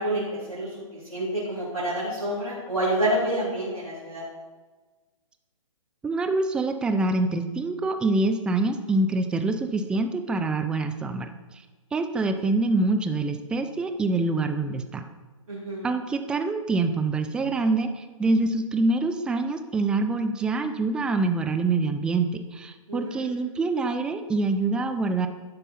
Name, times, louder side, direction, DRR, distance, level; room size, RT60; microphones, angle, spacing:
voice 1, 0.0-4.2 15.5-15.9 22.9-23.2, right 1 dB, 90° right, -7 dB, 2.9 m, -28 dB
voice 2, 6.0-11.3 11.9-15.0 15.8-25.3, right 3 dB, 5° right, 7 dB, 0.4 m, -25 dB
11.5 x 5.4 x 4.2 m, 1.3 s
hypercardioid pair, 135°, 17 cm